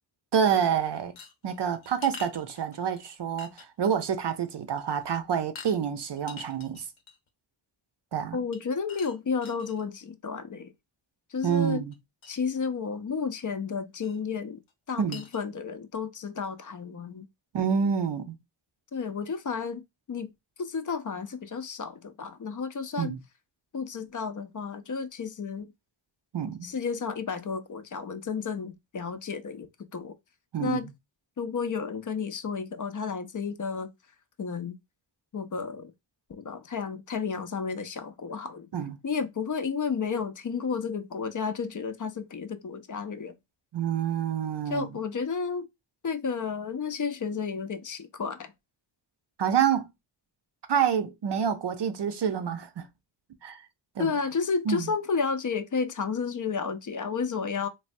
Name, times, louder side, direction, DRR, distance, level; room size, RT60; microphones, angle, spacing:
voice 1, 0.3-1.1 1.4-6.9 8.1-8.4 11.4-11.9 15.0-15.2 17.5-18.4 23.0-23.2 26.3-26.7 30.5-30.8 38.7-39.0 43.7-44.9 49.4-49.9 50.7-52.9 53.4-53.7 54.0-54.1 54.7-54.9, right 8 dB, 55° right, 0.6 m, -27 dB
sound 1, 1.2-3.0 3.4-3.9 4.3-4.4 4.8-5.0 5.5-5.8 6.2-7.3 8.5-9.8 11.4-11.6 11.9-12.0 12.2-12.3 14.0-14.2 14.7-14.8 15.1-15.4, left 4 dB, 70° left, 0.8 m, -46 dB
voice 2, 8.3-10.7 11.3-11.8 12.3-14.6 14.9-17.2 18.9-19.8 20.1-20.3 20.6-23.1 23.7-25.7 26.6-30.1 30.6-30.9 31.4-33.9 34.4-34.7 35.3-35.9 36.3-38.7 39.0-43.3 44.7-45.7 46.0-48.5 54.0-57.7, left 5 dB, 40° left, 0.5 m, -32 dB
3.3 x 2.2 x 2.6 m
cardioid pair, 40°, 49 cm